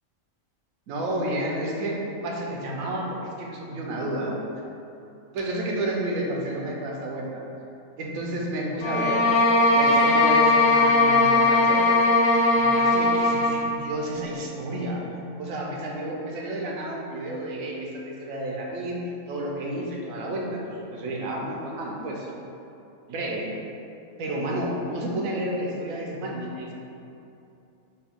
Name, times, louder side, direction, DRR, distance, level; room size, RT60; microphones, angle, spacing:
voice 1, 0.9-2.0 2.2-3.0 3.4-4.4 5.3-7.4 8.0-9.2 9.7-12.0 12.5-15.0 15.4-19.0 19.3-22.3 23.1-23.5 24.2-26.7, right 1 dB, 80° right, -2 dB, 1.0 m, -31 dB
sound 1, 8.8-13.7, left 2 dB, 90° left, 1.0 m, -19 dB
4.3 x 2.2 x 3.5 m, 2.8 s
omnidirectional pair, 1.4 m